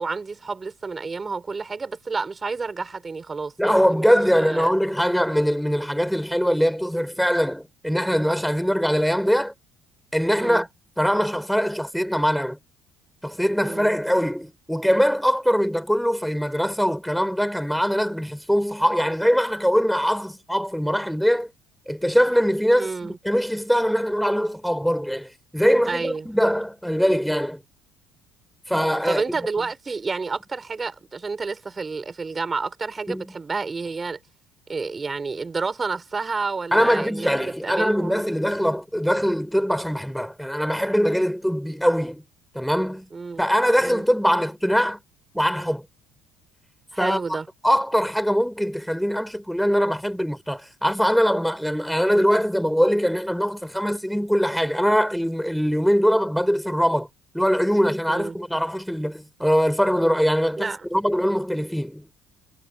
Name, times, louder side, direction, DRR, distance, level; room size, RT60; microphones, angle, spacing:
voice 1, 0.0-4.7 10.4-10.7 13.6-13.9 22.8-23.2 25.9-26.3 29.0-34.2 34.7-38.2 43.1-43.4 43.8-44.1 46.9-47.5 58.1-58.4 60.6-60.8, right 4 dB, 25° right, 6.4 m, -30 dB
voice 2, 3.6-9.5 10.1-10.7 11.0-12.6 13.2-21.5 21.9-27.6 28.7-29.2 33.1-33.3 36.7-42.2 42.5-43.1 43.4-45.0 45.3-45.9 47.0-47.2 47.6-57.1 57.3-62.1, equal, ahead, 5.9 m, -22 dB
hypercardioid pair, 60°, 0 cm